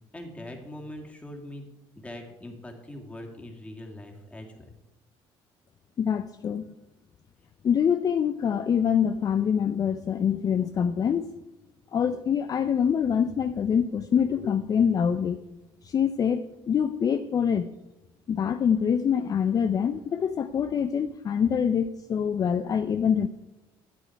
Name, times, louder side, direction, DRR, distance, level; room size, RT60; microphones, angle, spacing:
voice 1, 0.1-4.7, left 1 dB, 10° left, 1 dB, 2.1 m, -42 dB
voice 2, 6.0-6.7 7.6-11.3 11.9-15.4 15.8-17.7 18.3-23.3, left 7 dB, 40° left, 10 dB, 0.4 m, -25 dB
12.0 x 8.0 x 4.5 m, 1.0 s
cardioid pair, 100°, 10 cm